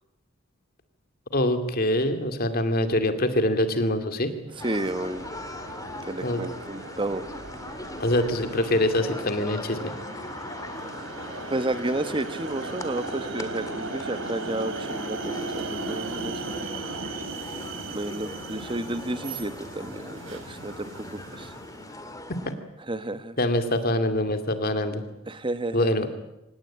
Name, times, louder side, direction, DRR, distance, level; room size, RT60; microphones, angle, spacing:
voice 1, 1.3-4.3 6.2-6.4 8.0-9.9 23.4-25.0 25.7-26.1, left 1 dB, 45° left, 8 dB, 2.4 m, -24 dB
sound 1, 4.5-22.0, right 3 dB, 70° right, 3.3 m, -37 dB
sound 2, 4.6-22.5, left 2 dB, 15° left, 2.0 m, -40 dB
voice 2, 4.6-5.3 6.1-7.3 11.5-17.1 17.9-21.6 22.9-23.4 25.3-25.9, right 2 dB, 25° right, 12 dB, 1.2 m, -32 dB
25.5 x 19.0 x 8.7 m, 0.91 s
head